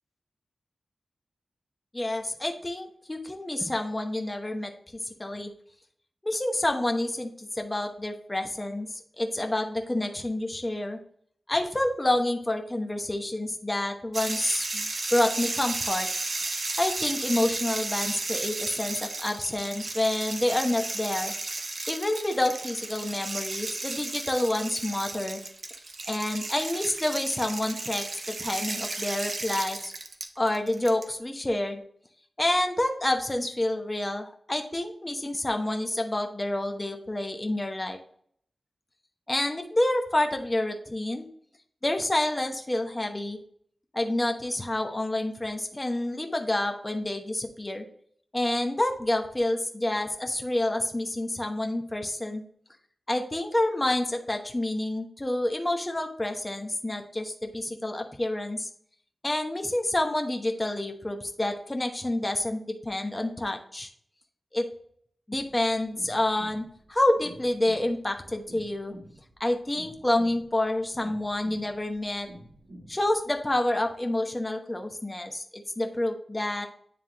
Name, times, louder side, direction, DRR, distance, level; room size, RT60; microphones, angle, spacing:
voice 1, 1.9-4.7 5.2-5.5 6.2-11.0 11.5-16.1 16.8-21.3 21.9-25.4 26.1-29.9 30.4-31.8 32.4-38.0 39.3-41.3 41.8-43.4 43.9-47.8 48.3-52.4 53.1-58.7 59.2-63.9 64.5-64.7 65.3-68.9 69.4-72.3 72.9-76.7, left 1 dB, 20° left, 3 dB, 0.9 m, -28 dB
sound 1, 14.1-31.0, right 2 dB, 50° right, 0.8 m, -34 dB
sound 2, 65.4-73.5, equal, 75° right, 2.2 m, -49 dB
9.4 x 3.5 x 2.9 m, 0.62 s
wide cardioid pair, 95°, 0 cm